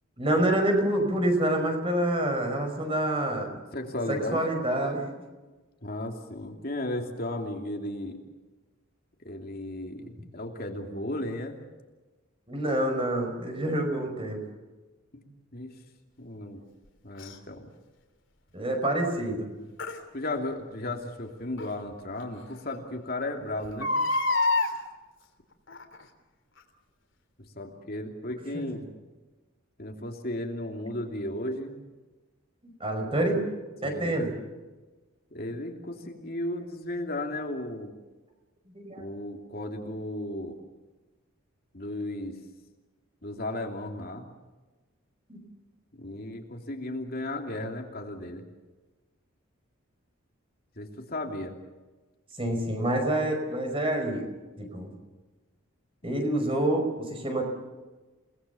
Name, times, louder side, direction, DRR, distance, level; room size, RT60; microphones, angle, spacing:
voice 1, 0.2-3.6 4.1-5.1 12.5-14.4 18.5-19.5 28.5-28.6 32.6-33.5 33.8-34.3 38.7-39.1 45.3-45.4 52.4-54.3 54.6-54.9 56.0-57.4, right 1 dB, 25° right, 4 dB, 5.3 m, -27 dB
voice 2, 3.7-4.4 5.8-8.2 9.2-10.0 10.3-11.6 15.1-15.2 15.5-15.7 16.2-16.6 17.0-17.7 20.1-23.9 27.6-28.9 29.8-31.7 33.8-34.2 35.3-37.9 39.0-40.6 41.7-42.4 43.2-44.3 45.9-48.4 50.8-51.5, left 1 dB, 45° left, 2 dB, 2.9 m, -35 dB
Crying sobbing, 17.2-17.3 19.8-20.0 21.6-21.7 22.2-22.3 22.5-22.6 23.6-24.7 25.7-26.0 26.6-26.7, left 2 dB, 60° left, 3.3 m, -26 dB
30.0 x 19.5 x 7.1 m, 1.2 s
head